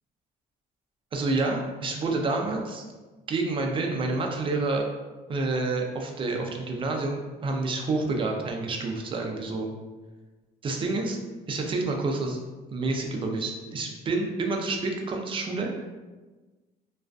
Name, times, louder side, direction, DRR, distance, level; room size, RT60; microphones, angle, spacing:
voice 1, 1.1-2.8 3.3-4.8 5.3-9.7 10.6-11.2 11.5-12.4 12.7-15.7, right 3 dB, 30° right, 2 dB, 0.4 m, -28 dB
2.4 x 2.3 x 2.2 m, 1.2 s
cardioid pair, 110°, 17 cm